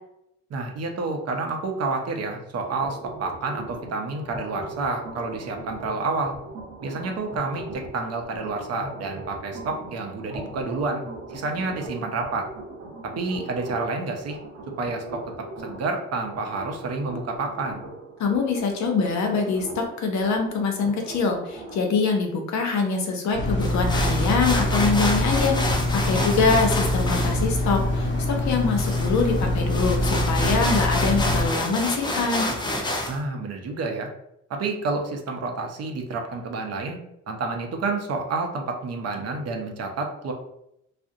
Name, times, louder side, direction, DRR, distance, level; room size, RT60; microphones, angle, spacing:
voice 1, 0.5-6.4 6.8-11.0 11.3-12.5 13.2-14.4 14.8-15.2 15.6-17.8 26.1-26.4 33.1-34.1 34.5-37.0 37.3-40.3, right 3 dB, 55° right, 3 dB, 0.6 m, -29 dB
sound 1, 2.6-21.8, right 2 dB, 80° right, 0.9 m, -40 dB
voice 2, 18.2-32.5, left 4 dB, 70° left, 3 dB, 0.7 m, -24 dB
sound 2, 23.3-31.5, left 1 dB, 40° left, 0.9 m, -24 dB
sound 3, 23.6-33.2, left 1 dB, 15° left, 0.4 m, -29 dB
2.4 x 2.1 x 2.6 m, 0.79 s
cardioid pair, 90°, 30 cm